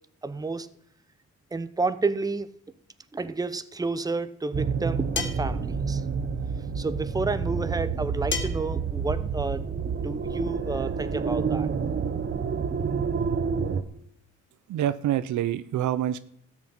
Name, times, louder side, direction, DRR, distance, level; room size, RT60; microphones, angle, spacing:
voice 1, 0.2-0.7 1.5-2.5 3.1-6.0 6.7-9.7 10.0-11.7, right 3 dB, 10° right, 12 dB, 0.8 m, -30 dB
sound 1, 4.5-13.8, right 5 dB, 35° right, 1.2 m, -29 dB
sound 2, 5.2-5.5 8.3-8.7, left 5 dB, 40° left, 1.6 m, -31 dB
voice 2, 14.7-16.2, right 11 dB, 75° right, 15 dB, 0.8 m, -26 dB
13.5 x 6.2 x 9.0 m, 0.70 s
cardioid pair, 90°, 30 cm